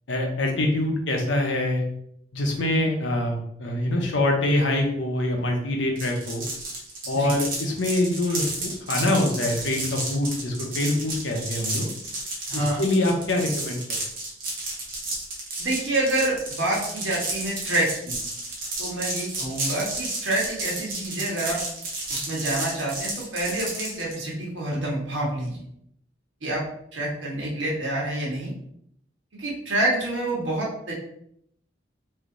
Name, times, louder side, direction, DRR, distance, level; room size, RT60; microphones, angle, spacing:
voice 1, 0.1-1.8 2.3-6.4 7.1-11.9 12.5-14.0, left 1 dB, 80° left, 1 dB, 0.9 m, -25 dB
sound 1, 6.0-24.2, right 2 dB, 45° right, 1.0 m, -32 dB
voice 2, 12.5-12.8 15.6-18.2 18.8-21.6 22.1-25.6 26.4-26.6 26.9-28.5 29.4-30.9, right 1 dB, 80° right, -4 dB, 1.4 m, -27 dB
3.3 x 2.8 x 3.9 m, 0.72 s
head